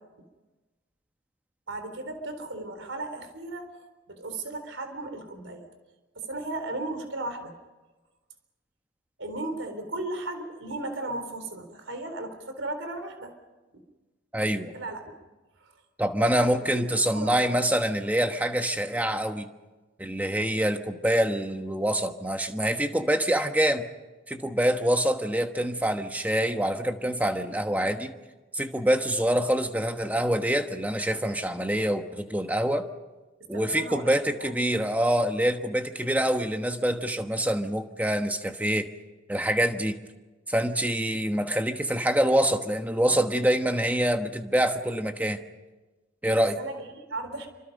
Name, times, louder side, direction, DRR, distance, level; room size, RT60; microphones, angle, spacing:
voice 1, 1.7-3.7 4.1-5.7 6.2-7.5 9.2-13.3 14.7-15.1 15.6-15.7 16.2-17.6 33.5-34.5 46.3-47.5, right 2 dB, 80° right, 7 dB, 3.9 m, -36 dB
voice 2, 14.3-14.7 16.0-19.5 20.0-23.9 24.3-28.1 28.5-32.8 33.5-38.9 39.3-40.0 40.5-45.4 46.2-46.6, right 1 dB, 10° right, 6 dB, 1.2 m, -25 dB
27.5 x 25.0 x 5.4 m, 1.2 s
head